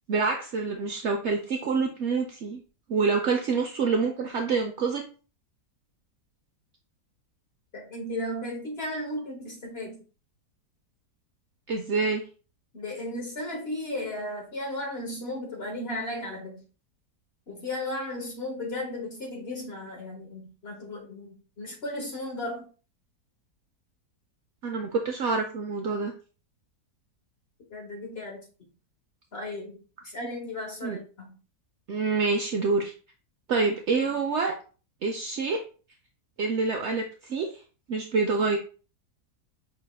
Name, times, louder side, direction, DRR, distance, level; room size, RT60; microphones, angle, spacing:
voice 1, 0.1-2.6 2.9-5.0 11.7-12.2 24.6-26.1 30.8-31.0 31.9-32.9 33.5-34.5 35.0-35.6 36.4-37.6 37.9-38.6, right 4 dB, 80° right, 3 dB, 0.6 m, -27 dB
voice 2, 7.7-10.0 12.7-16.6 17.5-22.7 27.7-28.4 29.3-29.8 30.1-31.4, left 1 dB, 45° left, 0 dB, 1.1 m, -35 dB
5.5 x 3.4 x 2.2 m, 0.36 s
omnidirectional pair, 1.8 m